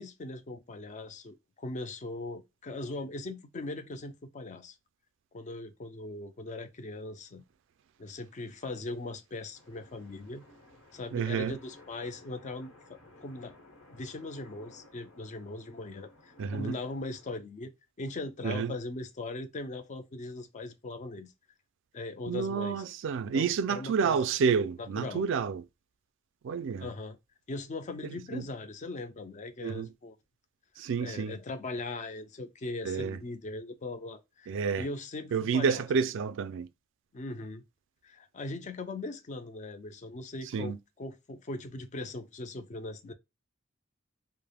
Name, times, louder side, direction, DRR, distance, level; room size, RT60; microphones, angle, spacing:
voice 1, 0.0-4.8 5.3-7.4 8.0-10.4 10.9-13.5 13.9-17.7 18.0-21.3 21.9-22.8 23.3-24.2 24.8-25.2 26.8-27.2 27.5-30.1 31.0-35.8 37.1-37.6 38.0-43.1, left 2 dB, 35° left, 0.4 m, -40 dB
sound 1, 9.5-17.4, left 2 dB, 70° left, 1.2 m, -56 dB
voice 2, 11.1-11.6 16.4-16.8 18.4-18.7 22.3-25.6 26.4-26.9 28.0-28.4 29.6-29.9 30.8-31.4 32.8-33.2 34.5-34.9 35.3-36.7 40.5-40.8, right 6 dB, 60° right, 0.3 m, -29 dB
3.3 x 2.0 x 2.2 m
head